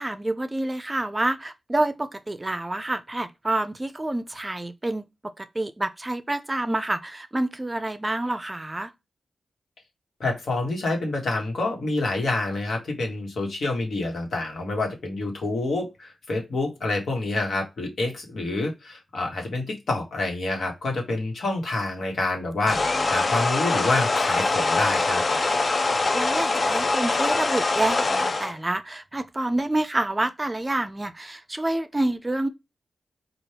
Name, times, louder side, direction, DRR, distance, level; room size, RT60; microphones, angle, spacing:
voice 1, 0.0-5.1 5.4-8.9 26.1-32.5, right 1 dB, 25° right, 0.5 m, -28 dB
voice 2, 10.2-25.2, left 2 dB, 75° left, 1.3 m, -27 dB
sound 1, 22.7-28.5, left 3 dB, 50° left, 0.4 m, -23 dB
4.3 x 2.4 x 3.3 m
cardioid pair, 60°, 0 cm